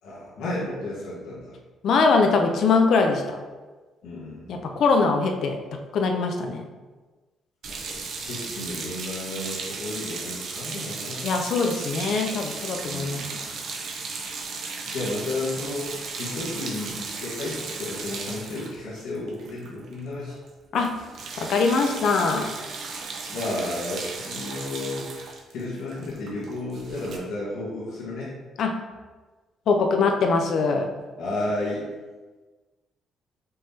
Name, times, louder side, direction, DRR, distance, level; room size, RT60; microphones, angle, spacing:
voice 1, 0.0-1.5 4.0-4.7 7.7-11.3 12.8-13.4 14.4-20.4 23.3-28.3 31.2-31.8, left 2 dB, 85° left, -8 dB, 1.5 m, -33 dB
voice 2, 1.8-3.4 4.5-5.6 5.9-6.7 11.2-13.3 20.7-20.9 21.4-22.5 28.6-28.7 29.7-30.9, left 4 dB, 65° left, 4 dB, 0.6 m, -22 dB
sound 1, 7.6-20.0 20.3-20.5 20.7-27.2, right 4 dB, 65° right, 0.7 m, -35 dB
5.3 x 3.5 x 2.8 m, 1.3 s
cardioid pair, 100°, 0 cm